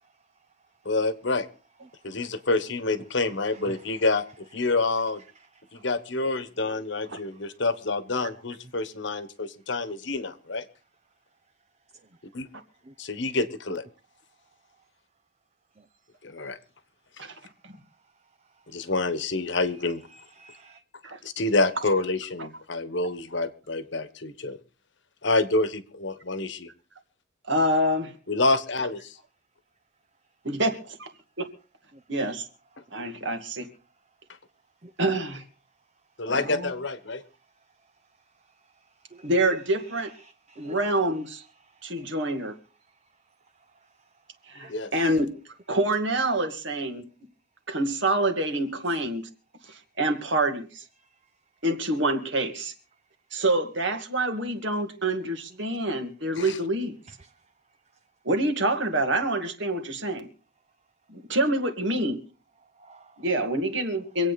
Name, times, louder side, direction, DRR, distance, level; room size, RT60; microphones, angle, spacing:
voice 1, 0.8-1.5 2.0-5.2 5.8-10.6 12.3-12.5 13.0-13.8 16.2-16.6 18.7-20.0 21.2-24.6 25.2-26.7 28.3-29.1 36.2-37.2 44.7-44.9 56.4-56.6, left 3 dB, 55° left, 12 dB, 1.3 m, -27 dB
voice 2, 3.5-3.9 6.6-6.8 12.9-13.0 20.1-20.8 31.9-32.0 34.8-34.9 39.1-39.3 40.2-40.8 41.8-42.1 44.6-45.0 49.7-49.8 57.2-57.3 62.8-63.2, right 2 dB, 30° right, 9 dB, 0.6 m, -50 dB
voice 3, 27.5-28.1 30.4-31.1 31.4-31.5 32.1-32.4 32.9-33.7 35.0-35.4 36.3-36.7 39.2-40.1 40.6-41.4 41.8-42.5 44.5-45.3 45.7-47.0 47.7-49.2 50.0-50.8 51.6-52.7 53.3-56.9 58.3-60.3 61.1-62.2 63.2-64.3, right 1 dB, 60° right, 6 dB, 2.3 m, -26 dB
26.0 x 8.8 x 4.1 m, 0.37 s
head